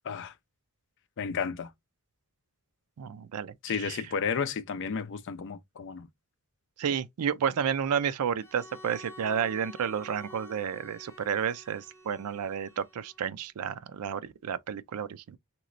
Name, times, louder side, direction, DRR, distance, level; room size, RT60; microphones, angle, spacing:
voice 1, 1.2-1.7 3.6-6.1, left 6 dB, 55° left, 0.4 m, -32 dB
voice 2, 3.0-4.0 6.8-15.4, right 7 dB, 75° right, 0.4 m, -31 dB
Bowed string instrument, 8.4-13.3, left 1 dB, 10° left, 1.2 m, -50 dB
3.0 x 2.9 x 2.5 m
head